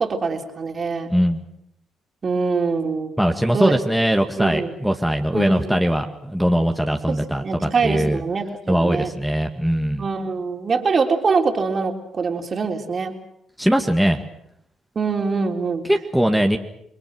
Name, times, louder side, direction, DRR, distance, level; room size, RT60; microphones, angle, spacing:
voice 1, 0.0-1.1 2.2-3.1 3.5-3.7 4.4-4.8 5.3-5.8 7.1-9.1 10.0-13.2 15.0-15.9, right 4 dB, 45° right, 4 dB, 3.6 m, -24 dB
voice 2, 1.1-1.4 3.2-8.2 8.7-10.0 13.6-14.2 15.9-16.6, equal, ahead, 3 dB, 2.2 m, -20 dB
28.5 x 22.0 x 6.3 m, 0.73 s
supercardioid pair, 55°, 0 cm